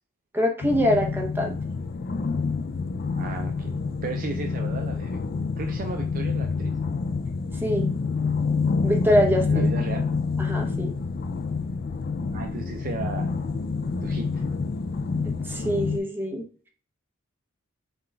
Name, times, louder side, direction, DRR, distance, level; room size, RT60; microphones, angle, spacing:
voice 1, 0.3-1.6 7.6-7.9 8.8-9.7 10.4-10.9 15.2-16.4, equal, 10° right, 1 dB, 0.8 m, -24 dB
sound 1, 0.6-16.0, left 4 dB, 45° left, 0.3 m, -27 dB
voice 2, 3.2-3.8 4.0-5.2 5.6-6.7 9.5-10.1 12.3-13.3 14.0-14.4, right 3 dB, 40° right, 4 dB, 0.4 m, -34 dB
6.0 x 2.3 x 3.2 m, 0.43 s
head